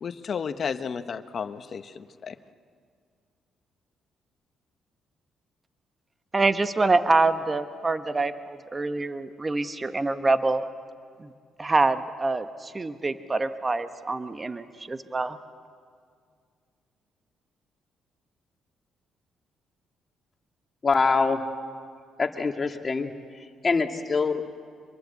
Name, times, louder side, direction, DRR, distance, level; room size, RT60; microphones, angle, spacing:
voice 1, 0.0-2.3, left 6 dB, 50° left, 11 dB, 1.1 m, -33 dB
voice 2, 6.3-10.6 11.2-11.3 11.6-15.4, right 3 dB, 25° right, 10 dB, 1.3 m, -25 dB
voice 3, 20.8-21.4 22.2-23.1 23.6-24.4, left 4 dB, 30° left, 5 dB, 2.1 m, -24 dB
25.5 x 22.5 x 8.4 m, 2.2 s
cardioid pair, 90°, 0 cm